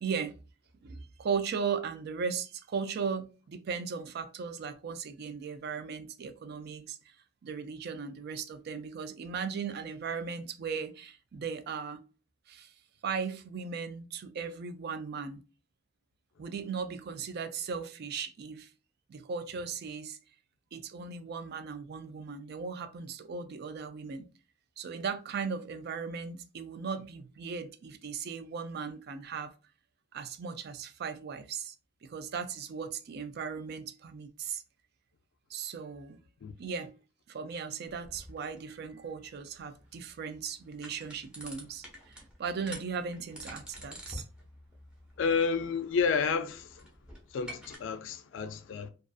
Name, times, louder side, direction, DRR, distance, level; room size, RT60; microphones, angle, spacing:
voice 1, 0.0-0.4 0.8-7.0 7.4-12.0 12.5-12.7 13.0-15.4 16.4-18.7 19.1-20.2 20.7-24.3 24.8-29.5 30.1-31.7 32.0-34.6 35.5-36.2 36.6-36.9 37.3-44.2, right 6 dB, 55° right, 0.4 m, -37 dB
sound 1, 37.9-47.8, equal, 5° right, 0.7 m, -49 dB
voice 2, 45.2-46.9 47.3-48.9, left 5 dB, 70° left, 0.4 m, -30 dB
2.4 x 2.3 x 2.3 m
head